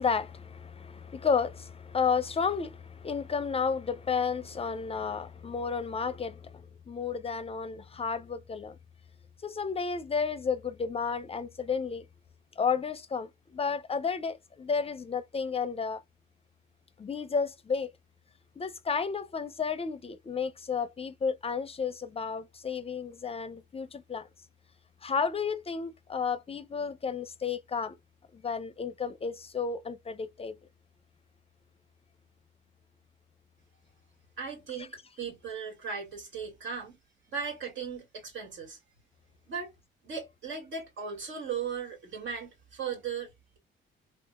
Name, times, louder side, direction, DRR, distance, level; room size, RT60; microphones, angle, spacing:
voice 1, 0.0-8.8 9.4-12.1 12.6-16.0 17.0-17.9 18.6-24.3 25.0-27.9 28.3-30.6 34.8-34.9, left 5 dB, 30° left, 0.5 m, -32 dB
voice 2, 34.4-34.9 35.2-37.0 37.3-38.8 39.5-39.7 40.0-43.3, right 6 dB, 75° right, 2.2 m, -37 dB
3.6 x 2.7 x 2.3 m
cardioid pair, 90°, 20 cm